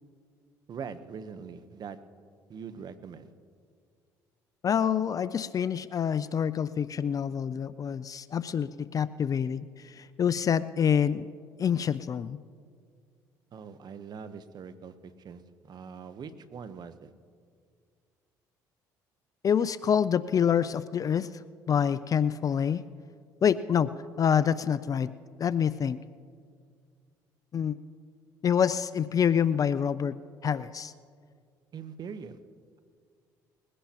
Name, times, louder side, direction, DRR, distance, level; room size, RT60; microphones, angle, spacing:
voice 1, 0.7-2.0 2.5-3.3 13.5-17.1 31.7-32.4, right 6 dB, 50° right, 11 dB, 1.0 m, -42 dB
voice 2, 4.6-11.3 11.6-12.4 19.4-21.4 21.7-22.8 23.4-23.9 24.2-25.1 25.4-26.0 27.5-27.8 28.4-30.2 30.4-30.9, left 8 dB, 40° left, 15 dB, 0.4 m, -26 dB
21.5 x 16.5 x 2.9 m, 2.1 s
supercardioid pair, 70°, 9 cm